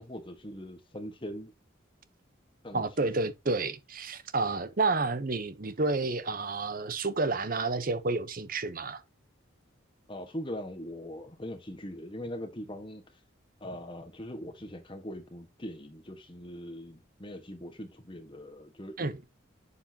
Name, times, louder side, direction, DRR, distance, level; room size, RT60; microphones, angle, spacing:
voice 1, 0.0-1.5 2.6-3.1 10.1-13.0 13.6-19.1, equal, 25° left, 1.4 m, -41 dB
voice 2, 2.7-9.0 19.0-19.1, right 3 dB, 45° right, 0.9 m, -30 dB
8.1 x 7.0 x 2.9 m
head